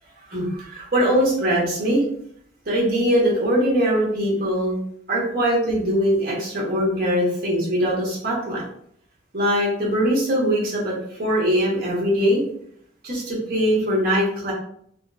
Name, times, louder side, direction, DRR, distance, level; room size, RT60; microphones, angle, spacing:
voice 1, 0.3-2.0 2.6-4.8 5.1-8.6 9.3-12.4 13.0-14.5, equal, 50° right, -4 dB, 1.2 m, -21 dB
4.0 x 2.0 x 2.4 m, 0.67 s
head